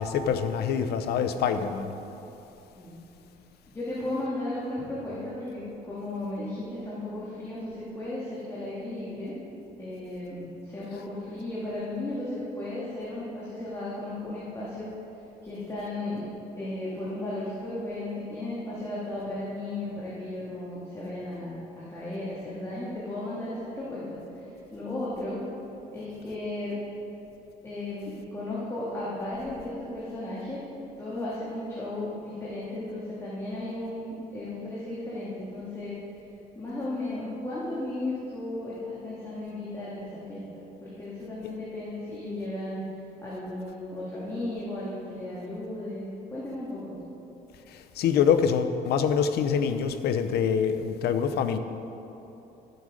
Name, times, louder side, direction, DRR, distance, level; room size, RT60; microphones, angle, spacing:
voice 1, 0.0-1.9 41.4-41.5 48.0-51.6, left 7 dB, 70° left, 9 dB, 0.8 m, -25 dB
voice 2, 3.7-9.4 9.8-14.9 15.4-16.2 16.6-24.0 24.7-25.4 25.9-26.8 27.6-30.6 31.0-36.0 36.5-42.8 43.2-46.9, left 1 dB, 15° left, -9 dB, 2.5 m, -35 dB
14.0 x 7.9 x 5.0 m, 3.0 s
cardioid pair, 110°, 17 cm